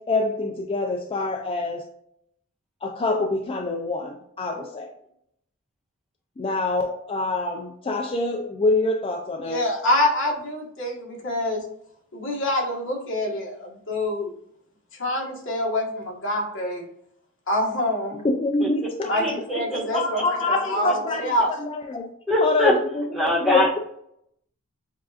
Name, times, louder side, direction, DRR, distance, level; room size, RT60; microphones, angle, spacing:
voice 1, 0.0-1.9 2.8-4.9 6.4-9.6 18.2-19.2 19.9-22.1 22.4-23.6, left 2 dB, 25° left, 3 dB, 0.4 m, -25 dB
voice 2, 9.4-11.6 12.1-14.3 15.0-16.8 17.5-18.3 19.1-21.5, left 1 dB, 60° left, -2 dB, 1.4 m, -26 dB
voice 3, 19.2-20.2 20.9-21.0 22.3-22.7 23.1-23.8, left 1 dB, ahead, -4 dB, 1.2 m, -23 dB
7.2 x 2.5 x 2.4 m, 0.72 s
head